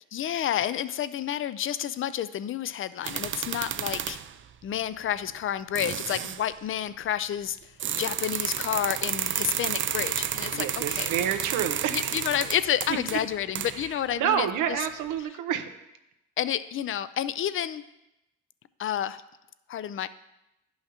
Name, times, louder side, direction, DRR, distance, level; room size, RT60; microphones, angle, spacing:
voice 1, 0.1-4.2 4.6-7.7 8.0-11.1 11.9-14.5 16.4-17.8 18.8-19.2 19.7-20.1, left 10 dB, 45° left, 15 dB, 0.4 m, -30 dB
sound 1, 3.0-4.3 5.3-5.4 5.8-6.4 7.8-13.9, right 10 dB, 40° right, 0.4 m, -31 dB
voice 2, 10.5-12.2 12.9-13.0 13.7-15.8, right 9 dB, 90° right, 7 dB, 0.7 m, -29 dB
10.5 x 5.6 x 2.9 m, 0.90 s
cardioid pair, 90°, 30 cm